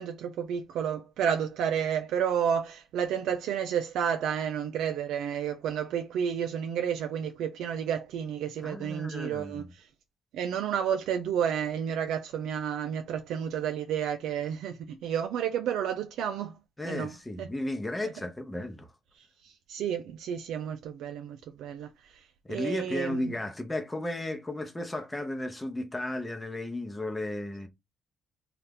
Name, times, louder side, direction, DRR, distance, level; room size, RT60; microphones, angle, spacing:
voice 1, 0.0-9.9 10.3-16.6 16.8-17.1 17.4-17.5 19.2-23.4, right 8 dB, 85° right, 0.4 m, -31 dB
voice 2, 8.6-9.7 16.8-18.9 22.4-27.7, left 1 dB, 15° left, 0.7 m, -34 dB
2.7 x 2.4 x 3.4 m
cardioid pair, 90°, 0 cm